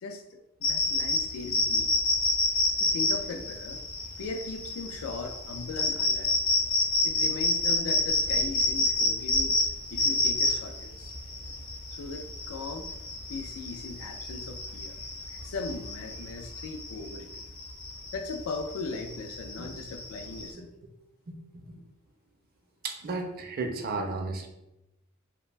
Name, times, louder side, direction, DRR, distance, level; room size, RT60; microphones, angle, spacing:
voice 1, 0.0-1.9 2.8-3.8 4.2-6.4 7.0-9.6 9.9-11.2 11.9-12.9 13.3-15.0 15.4-17.3 18.1-20.7, left 3 dB, 85° left, 6 dB, 0.4 m, -38 dB
sound 1, 0.6-20.5, left 2 dB, 70° left, 0.8 m, -28 dB
voice 2, 21.3-21.8 22.8-24.5, right 3 dB, 45° right, 4 dB, 0.4 m, -34 dB
2.4 x 2.1 x 3.1 m, 0.92 s
head